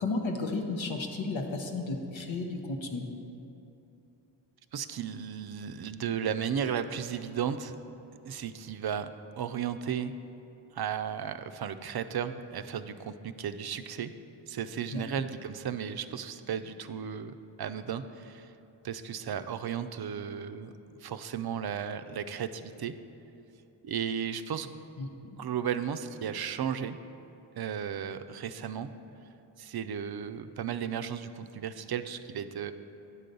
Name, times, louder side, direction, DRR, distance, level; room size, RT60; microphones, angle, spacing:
voice 1, 0.0-3.0 14.9-15.0 25.0-25.1, left 3 dB, 80° left, 3 dB, 0.9 m, -33 dB
voice 2, 4.7-7.7 8.2-9.1 9.4-10.1 10.7-14.1 14.5-18.5 18.8-20.7 21.0-22.9 23.8-24.7 25.4-27.0 27.6-28.9 29.6-32.7, right 8 dB, 55° right, 11 dB, 0.5 m, -34 dB
9.7 x 3.9 x 6.7 m, 2.9 s
cardioid pair, 45°, 46 cm